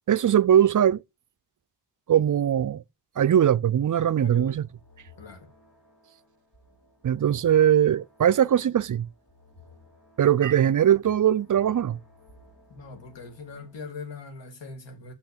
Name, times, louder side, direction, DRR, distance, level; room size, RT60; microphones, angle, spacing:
voice 1, 0.1-1.0 2.1-2.8 3.2-4.7 7.0-9.1 10.2-12.0, right 10 dB, 50° right, 0.5 m, -21 dB
voice 2, 4.2-4.6 5.2-5.5 12.7-15.1, left 4 dB, 85° left, 2.5 m, -41 dB
sound 1, 4.3-13.8, left 3 dB, 60° left, 4.8 m, -56 dB
6.3 x 5.8 x 6.7 m
cardioid pair, 60°, 42 cm